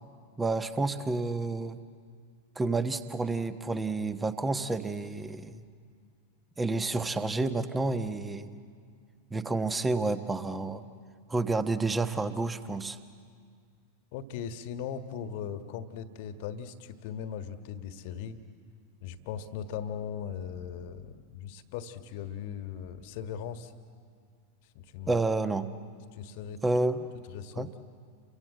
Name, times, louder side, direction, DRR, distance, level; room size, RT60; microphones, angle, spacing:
voice 1, 0.4-1.8 2.6-5.6 6.6-8.6 9.3-10.8 11.3-13.0 25.1-25.7 26.6-27.1 27.6-27.7, right 3 dB, 10° right, 11 dB, 1.2 m, -29 dB
voice 2, 14.1-18.4 19.0-23.7 24.7-25.1 26.1-26.6 27.3-27.7, left 8 dB, 50° left, 9 dB, 1.6 m, -39 dB
30.0 x 23.5 x 7.8 m, 2.1 s
figure-of-eight pair, 90°, 0 cm